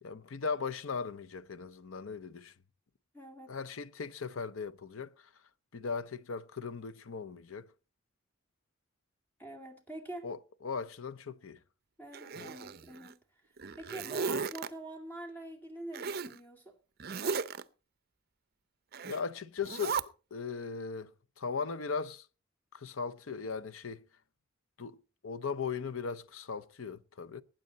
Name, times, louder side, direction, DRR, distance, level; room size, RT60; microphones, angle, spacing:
voice 1, 0.0-2.5 3.5-5.3 5.7-7.7 10.2-11.6 12.4-12.5 19.0-20.0 20.3-21.1 21.4-22.3 22.7-24.0 24.8-27.4, left 5 dB, 85° left, 0.7 m, -38 dB
voice 2, 3.1-3.6 9.4-10.3 12.0-13.1 13.8-16.7, right 1 dB, 10° left, 2.4 m, -45 dB
Zipper (clothing), 12.1-13.1 13.6-14.7 15.9-16.4 17.0-17.6 18.9-19.2 19.6-20.0, right 5 dB, 50° right, 0.6 m, -36 dB
20.0 x 9.0 x 4.0 m
head